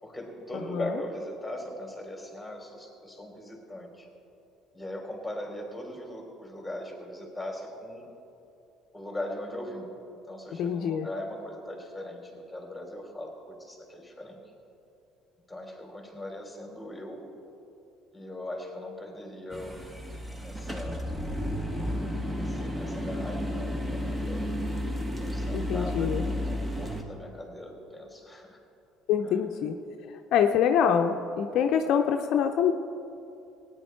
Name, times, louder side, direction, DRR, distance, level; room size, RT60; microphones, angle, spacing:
voice 1, 0.0-4.1 4.7-8.1 8.9-9.9 10.3-14.4 15.5-17.2 18.1-19.8 20.4-21.1 22.4-24.5 25.2-28.6 29.2-29.4, left 1 dB, 5° left, 0 dB, 3.6 m, -39 dB
voice 2, 0.5-1.0 10.6-11.1 25.5-26.2 29.1-29.7 30.3-32.7, left 8 dB, 65° left, 5 dB, 0.6 m, -25 dB
sound 1, 19.5-27.0, equal, 15° right, 1.6 m, -32 dB
18.0 x 9.7 x 4.6 m, 2.7 s
hypercardioid pair, 65°, 0 cm